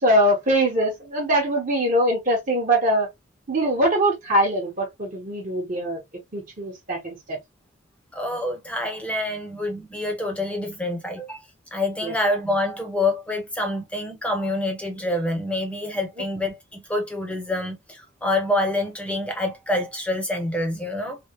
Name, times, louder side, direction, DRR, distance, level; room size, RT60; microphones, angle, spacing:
voice 1, 0.0-3.1 3.5-6.0 6.3-7.4 12.0-12.1, right 1 dB, 40° right, 0.9 m, -22 dB
voice 2, 8.1-11.4 11.7-21.2, left 1 dB, 5° left, 0.7 m, -27 dB
3.4 x 2.3 x 2.8 m
head